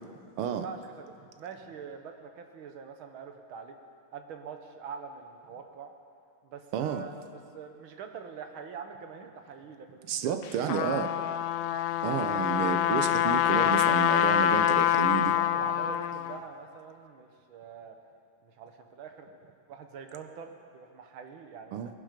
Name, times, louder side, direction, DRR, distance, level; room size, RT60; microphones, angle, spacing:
voice 1, 0.6-3.8 4.1-5.9 6.4-11.4 15.3-18.0 18.4-21.8, right 6 dB, 70° right, 6 dB, 1.9 m, -44 dB
voice 2, 6.7-7.0 10.1-11.1 12.0-15.4 21.7-21.9, right 8 dB, 90° right, 9 dB, 1.7 m, -31 dB
Trumpet, 10.4-16.4, left 11 dB, 80° left, 1.4 m, -25 dB
20.5 x 11.5 x 5.1 m, 2.4 s
omnidirectional pair, 2.3 m